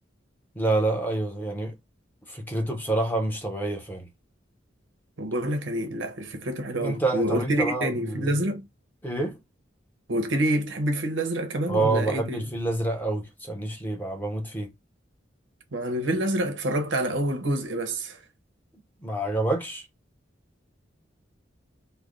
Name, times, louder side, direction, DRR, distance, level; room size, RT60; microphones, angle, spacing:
voice 1, 0.6-1.7 2.3-4.1 6.8-8.2 9.0-9.4 11.7-14.7 19.0-19.8, right 2 dB, 10° left, 0.8 m, -27 dB
voice 2, 5.2-8.7 10.1-12.4 15.7-18.2, right 1 dB, 90° right, 0.9 m, -27 dB
3.3 x 2.1 x 3.7 m
head